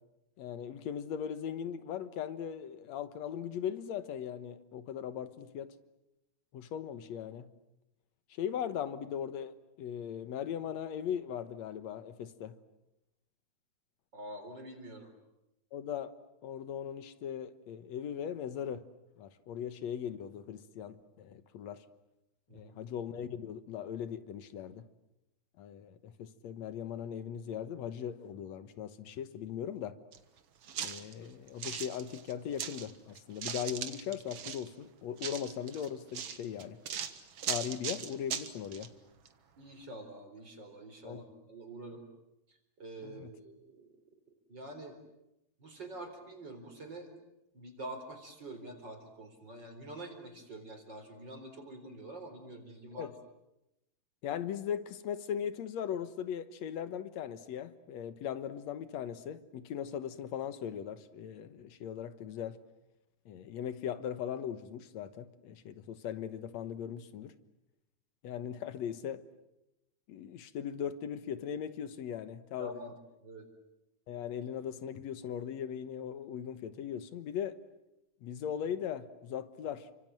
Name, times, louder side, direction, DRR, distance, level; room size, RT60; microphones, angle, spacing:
voice 1, 0.4-5.7 6.5-7.5 8.3-12.6 15.7-16.1 16.4-18.9 19.2-21.8 22.5-24.9 25.6-30.0 30.8-36.8 37.5-38.9 41.0-41.2 43.0-43.3 52.9-53.1 54.2-62.6 63.3-67.3 68.2-69.2 70.1-72.8 74.1-77.6 78.2-79.9, left 9 dB, 65° left, 2.3 m, -39 dB
voice 2, 14.1-15.1 22.5-22.9 39.6-42.0 42.8-43.9 44.5-45.0 45.6-47.1 47.5-53.1 72.6-72.9 73.2-73.4, right 1 dB, 35° right, 4.5 m, -46 dB
sound 1, 30.1-30.2 30.6-32.9 33.2-34.7 35.2-38.9 39.3-39.4, right 8 dB, 55° right, 2.1 m, -39 dB
30.0 x 25.5 x 7.7 m
omnidirectional pair, 3.7 m